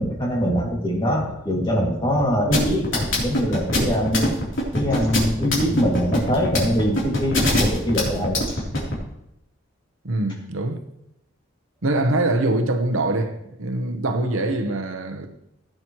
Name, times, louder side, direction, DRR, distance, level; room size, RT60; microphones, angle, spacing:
voice 1, 0.0-4.4 4.7-8.6, equal, 20° left, 2.3 m, -23 dB
sound 1, 2.5-8.9, left 1 dB, 65° left, 3.5 m, -22 dB
voice 2, 10.0-10.8 11.8-15.3, right 2 dB, 75° right, 1.0 m, -23 dB
16.0 x 8.8 x 3.1 m
head